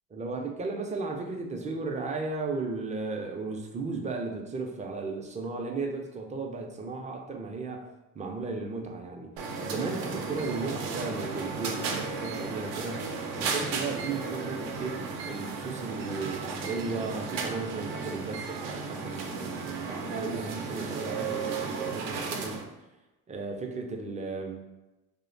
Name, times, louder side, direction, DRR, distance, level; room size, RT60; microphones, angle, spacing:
voice 1, 0.1-7.9 8.1-9.3 9.6-13.1 13.4-22.6 23.3-24.6, right 3 dB, 20° right, 3 dB, 0.3 m, -35 dB
sound 1, 9.4-22.6, right 4 dB, 80° right, 0.5 m, -34 dB
2.7 x 2.1 x 2.5 m, 1.0 s
supercardioid pair, 80°, 38 cm